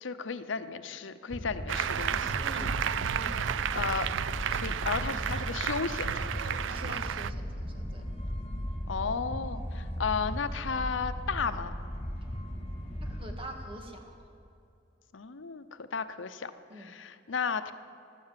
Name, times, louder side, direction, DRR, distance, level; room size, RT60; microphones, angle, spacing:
voice 1, 0.0-2.4 3.7-4.1 4.5-7.0 8.9-11.8 15.1-16.5 16.8-17.7, left 5 dB, 85° left, 11 dB, 0.7 m, -34 dB
sound 1, 1.3-13.3, equal, 35° left, 1.8 m, -37 dB
Applause, 1.7-7.3, right 9 dB, 80° right, 0.4 m, -32 dB
voice 2, 2.4-2.8 3.1-3.4 6.7-8.0 13.0-14.2 16.7-17.0, right 1 dB, 30° right, 3 dB, 1.8 m, -45 dB
15.5 x 12.5 x 7.5 m, 2.6 s
head